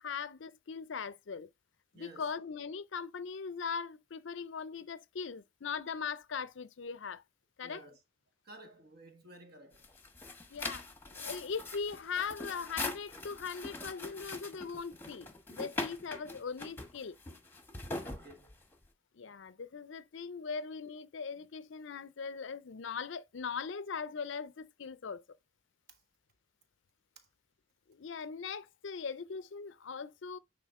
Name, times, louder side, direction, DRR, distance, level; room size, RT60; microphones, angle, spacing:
voice 1, 0.0-1.5 1.9-7.2 7.6-7.8 10.5-10.9 11.1-17.2 19.1-25.2 27.9-30.4, left 5 dB, 65° left, 0.5 m, -40 dB
voice 2, 1.9-2.3 7.6-8.0 8.4-9.8 18.0-18.6 25.9-26.0 27.2-27.3, right 2 dB, 50° right, 1.5 m, -54 dB
sound 1, 9.7-18.9, left 2 dB, 10° left, 1.0 m, -42 dB
9.3 x 3.8 x 3.6 m
head